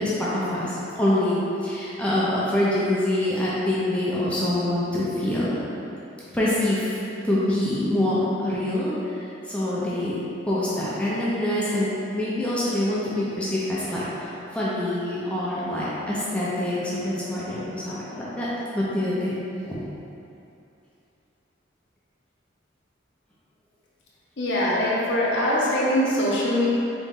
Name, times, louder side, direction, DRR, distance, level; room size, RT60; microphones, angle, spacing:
voice 1, 0.0-5.6 6.3-6.9 7.2-8.9 9.5-10.2 10.5-18.5 18.7-19.4 19.6-19.7, left 1 dB, 5° left, -9 dB, 0.6 m, -25 dB
voice 2, 24.4-26.7, left 1 dB, 70° left, -6 dB, 0.9 m, -22 dB
4.1 x 3.1 x 3.7 m, 2.7 s
head